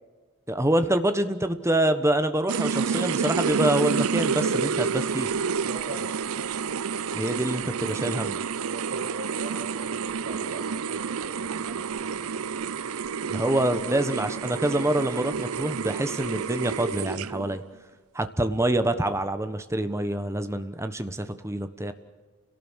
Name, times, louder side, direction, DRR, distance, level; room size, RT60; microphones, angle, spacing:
voice 1, 0.5-5.3 7.1-8.4 13.2-17.6 18.1-21.9, right 1 dB, 10° right, 9 dB, 1.2 m, -26 dB
sound 1, 2.5-17.6, right 6 dB, 70° right, 0.6 m, -29 dB
voice 2, 5.6-6.1 8.6-12.6, right 2 dB, 45° right, 0 dB, 5.8 m, -41 dB
30.0 x 18.0 x 6.4 m, 1.4 s
head